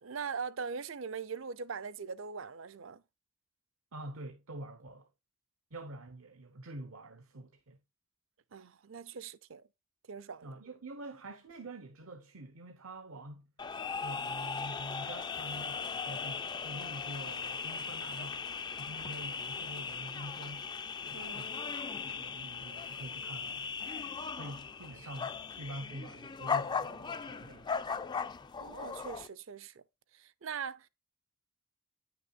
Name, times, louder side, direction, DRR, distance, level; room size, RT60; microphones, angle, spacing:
voice 1, 0.0-3.0 8.5-9.6 10.1-10.6 21.1-21.5 28.6-29.8 30.1-30.9, right 6 dB, 70° right, 0.6 m, -41 dB
voice 2, 3.9-5.1 5.7-7.8 10.4-13.5 14.0-18.4 18.7-20.7 21.1-21.6 22.0-23.7 24.3-27.8, right 1 dB, 90° right, 1.0 m, -46 dB
sound 1, 13.6-29.3, left 5 dB, 20° left, 0.3 m, -38 dB
9.6 x 6.2 x 2.4 m
head